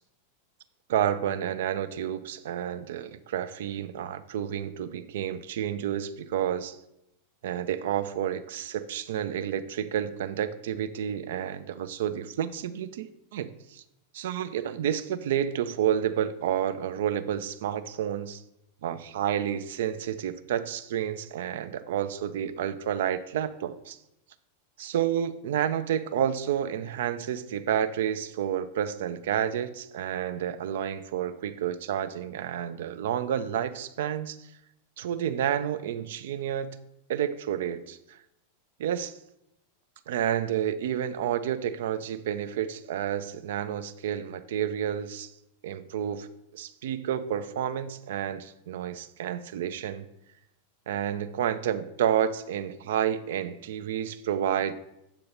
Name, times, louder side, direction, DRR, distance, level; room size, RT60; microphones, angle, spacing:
voice 1, 0.9-6.8 7.4-13.8 14.1-18.4 18.8-24.0 24.8-34.4 35.0-36.8 37.1-38.0 38.8-39.1 40.1-45.3 45.6-46.3 46.5-50.0 50.9-54.7, right 10 dB, 55° right, 12 dB, 0.3 m, -30 dB
7.0 x 2.9 x 5.1 m, 0.84 s
figure-of-eight pair, 90°, 0 cm